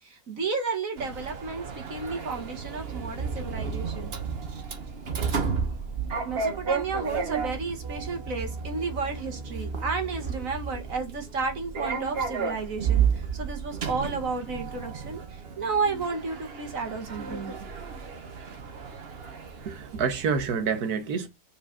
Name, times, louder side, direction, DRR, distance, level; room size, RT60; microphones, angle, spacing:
voice 1, 0.0-4.2 6.2-17.6, right 4 dB, 60° right, 2.2 m, -32 dB
Sliding door, 1.0-20.6, right 6 dB, 40° right, 1.2 m, -32 dB
voice 2, 19.6-21.3, right 6 dB, 75° right, 1.7 m, -28 dB
5.4 x 4.9 x 5.6 m
omnidirectional pair, 1.7 m